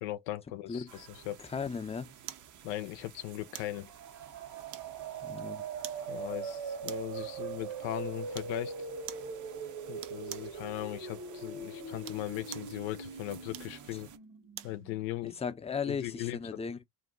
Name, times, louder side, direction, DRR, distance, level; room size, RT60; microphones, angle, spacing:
voice 1, 0.0-1.4 2.6-3.9 6.1-8.7 9.9-14.1 14.6-15.4 15.9-16.6, left 15 dB, 75° left, 0.6 m, -38 dB
voice 2, 0.7-1.0 1.4-2.1 5.2-5.6 13.9-14.0 15.2-16.8, left 6 dB, 15° left, 0.5 m, -36 dB
sound 1, 0.9-14.2, right 9 dB, 45° right, 0.6 m, -54 dB
sound 2, 2.3-2.5 3.5-3.8 4.7-5.2 5.8-6.1 6.9-7.2 8.3-8.6 9.1-9.3 10.0-10.6 11.9-12.8 13.5-14.8 15.3-15.4, right 13 dB, 85° right, 0.6 m, -45 dB
sound 3, 3.8-15.4, right 5 dB, 65° right, 1.2 m, -41 dB
2.6 x 2.1 x 3.6 m
hypercardioid pair, 60°, 44 cm